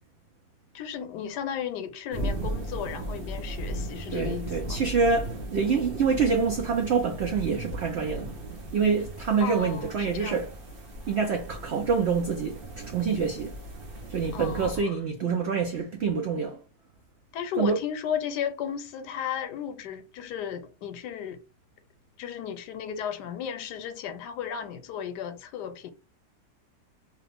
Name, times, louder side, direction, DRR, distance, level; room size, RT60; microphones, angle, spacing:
voice 1, 0.7-4.8 9.4-10.4 14.3-15.0 17.3-21.4 22.2-25.9, left 8 dB, 85° left, 1.2 m, -34 dB
sound 1, 2.1-14.8, right 1 dB, 45° right, 0.8 m, -37 dB
voice 2, 4.1-8.3 8.7-10.5 11.1-13.5 14.1-16.6 17.6-17.8, right 5 dB, 80° right, 0.5 m, -26 dB
3.0 x 2.3 x 3.3 m
omnidirectional pair, 1.8 m